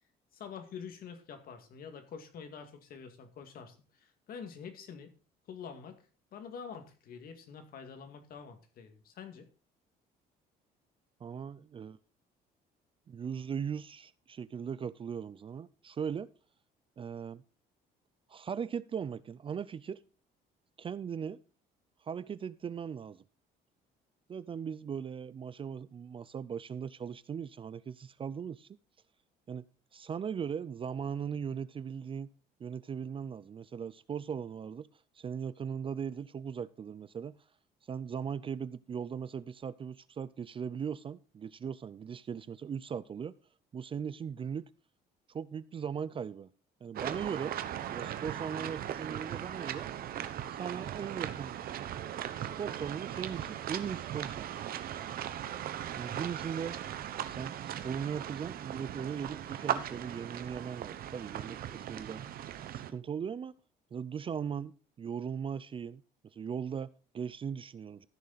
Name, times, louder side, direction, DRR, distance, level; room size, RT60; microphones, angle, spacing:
voice 1, 0.3-5.1 5.5-6.1 6.3-9.5, left 6 dB, 60° left, 2.0 m, -46 dB
voice 2, 11.2-12.0 13.1-16.3 17.0-17.4 18.3-20.0 20.8-21.4 22.0-23.2 24.3-28.7 29.5-29.6 29.9-32.3 32.6-34.9 35.2-37.4 37.9-43.3 43.7-44.7 45.3-46.5 46.8-47.6 47.9-49.9 50.5-51.6 52.4-54.8 56.0-56.8 57.2-62.2 62.7-63.6 63.9-66.0 66.3-68.1, right 7 dB, 30° right, 0.4 m, -39 dB
sound 1, 46.9-62.9, right 10 dB, 60° right, 1.0 m, -38 dB
14.5 x 6.5 x 4.0 m
cardioid pair, 110°, 17 cm